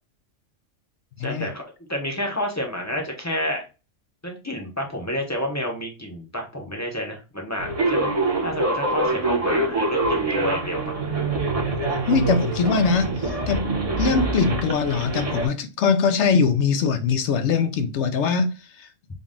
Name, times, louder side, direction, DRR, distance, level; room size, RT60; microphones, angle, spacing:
voice 1, 1.2-1.6 1.9-3.6 4.2-8.1 8.4-11.0, equal, 15° left, 0.8 m, -29 dB
sound 1, 7.6-15.5, right 2 dB, 30° right, 1.0 m, -25 dB
voice 2, 11.7-13.6 14.0-18.5 18.8-18.9, left 5 dB, 70° left, 0.8 m, -22 dB
3.9 x 2.3 x 3.6 m
omnidirectional pair, 1.3 m